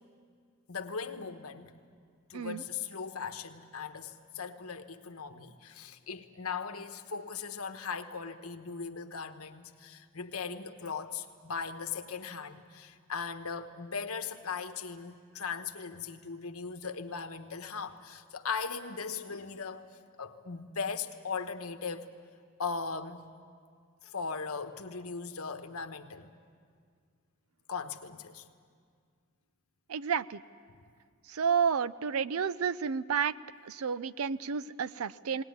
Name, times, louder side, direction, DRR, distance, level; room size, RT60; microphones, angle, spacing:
voice 1, 0.7-1.8 2.3-19.9 20.2-22.1 22.6-23.3 24.0-26.3 27.7-28.4, left 5 dB, 80° left, 8 dB, 1.2 m, -38 dB
voice 2, 29.9-30.4 31.3-33.3 33.7-35.4, right 6 dB, 75° right, 17 dB, 0.5 m, -31 dB
19.5 x 19.5 x 9.5 m, 2.1 s
head